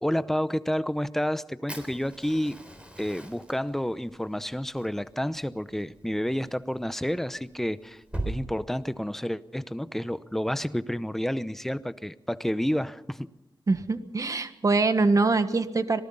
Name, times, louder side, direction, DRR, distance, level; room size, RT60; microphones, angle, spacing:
voice 1, 0.0-2.6 3.0-13.3, equal, 5° left, 14 dB, 0.8 m, -30 dB
Fire, 1.7-8.3, right 2 dB, 15° right, 3.9 m, -41 dB
voice 2, 13.7-16.0, right 3 dB, 40° right, 9 dB, 1.5 m, -24 dB
26.0 x 19.0 x 5.6 m, 0.90 s
wide cardioid pair, 100°, 8 cm